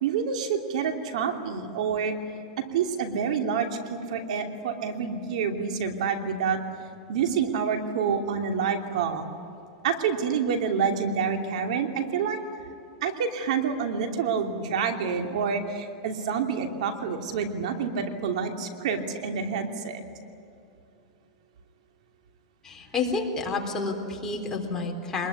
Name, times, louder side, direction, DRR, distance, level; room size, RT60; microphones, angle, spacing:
voice 1, 0.0-2.1 2.6-6.6 7.1-9.3 9.8-12.4 13.0-20.0, right 6 dB, 75° right, 5 dB, 2.9 m, -28 dB
voice 2, 22.6-25.3, left 3 dB, 15° left, 1 dB, 3.7 m, -29 dB
24.5 x 21.0 x 9.7 m, 2.7 s
supercardioid pair, 145°, 4 cm